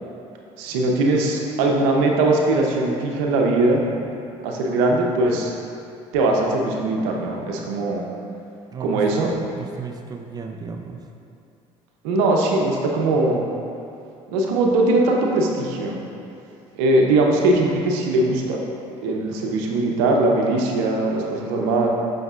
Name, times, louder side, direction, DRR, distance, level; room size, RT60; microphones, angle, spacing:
voice 1, 0.6-3.8 4.4-5.5 6.1-8.0 8.8-9.3 12.0-13.4 14.3-16.0 16.8-18.6 19.0-21.9, right 2 dB, 85° right, 0 dB, 0.8 m, -20 dB
voice 2, 8.7-11.0, right 5 dB, 25° right, 3 dB, 0.5 m, -34 dB
7.7 x 5.9 x 2.5 m, 2.6 s
supercardioid pair, 70°, 15 cm